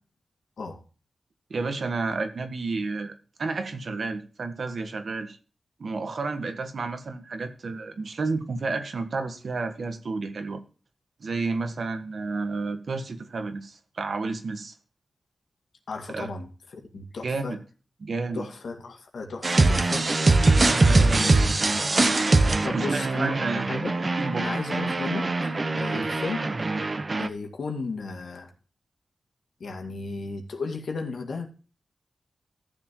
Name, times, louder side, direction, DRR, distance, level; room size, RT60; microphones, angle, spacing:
voice 1, 1.5-5.4 5.8-10.6 11.2-14.7 16.1-16.3 17.2-17.6 18.0-18.5 20.6-21.3 22.7-23.7 24.2-24.4 25.9-26.1, right 3 dB, 70° right, 8 dB, 1.5 m, -31 dB
voice 2, 15.9-17.6 18.3-20.0 20.9-21.4 21.7-21.8 22.6-23.9 24.4-25.3 25.8-26.4 27.2-28.5 29.6-31.5, left 3 dB, 85° left, 4 dB, 2.1 m, -34 dB
sound 1, 19.4-27.3, right 3 dB, 45° right, 1.1 m, -22 dB
14.5 x 7.0 x 3.0 m, 0.37 s
cardioid pair, 60°, 0 cm